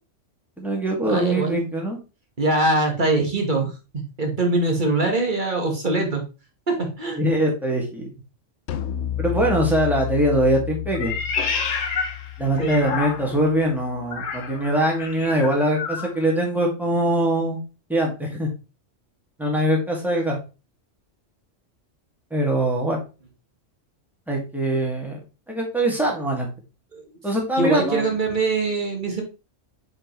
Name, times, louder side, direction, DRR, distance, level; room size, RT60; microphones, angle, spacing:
voice 1, 0.6-2.0 7.2-8.1 9.2-11.1 12.4-17.6 17.9-18.5 19.4-20.4 22.3-23.0 24.3-25.2 25.5-26.5 27.2-28.1, right 1 dB, ahead, -1 dB, 2.0 m, -22 dB
voice 2, 1.1-1.6 2.4-6.2 6.7-7.2 12.6-12.9 26.9-27.0 27.6-29.2, right 2 dB, 40° right, 2 dB, 1.7 m, -23 dB
sound 1, 8.7-14.1, left 13 dB, 70° left, 0.9 m, -32 dB
Meow, 10.9-13.5 14.1-16.1, left 5 dB, 90° left, 1.3 m, -29 dB
6.3 x 5.2 x 3.1 m, 0.30 s
omnidirectional pair, 1.3 m